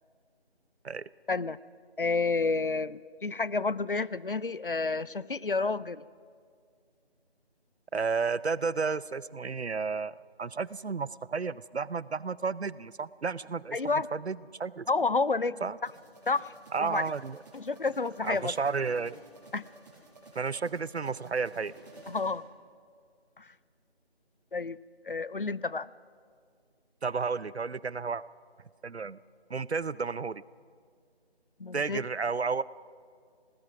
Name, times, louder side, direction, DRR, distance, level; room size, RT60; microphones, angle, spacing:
voice 1, 1.3-1.6 2.0-6.0 13.7-14.1 14.9-15.9 16.3-16.5 16.8-17.0 17.5-18.5 19.5-19.6 22.1-22.4 23.4-23.5 24.5-24.8 25.0-25.9 31.6-32.0, left 3 dB, 55° left, 19 dB, 0.5 m, -30 dB
voice 2, 7.9-13.8 14.1-14.9 15.6-15.8 16.7-17.4 18.2-19.2 20.3-21.7 27.0-28.2 28.8-29.2 29.5-30.4 31.7-32.6, right 5 dB, 80° right, 20 dB, 0.6 m, -32 dB
sound 1, 15.9-22.3, right 2 dB, 15° right, 7.0 m, -53 dB
25.5 x 19.5 x 6.0 m, 2.1 s
figure-of-eight pair, 165°, 32 cm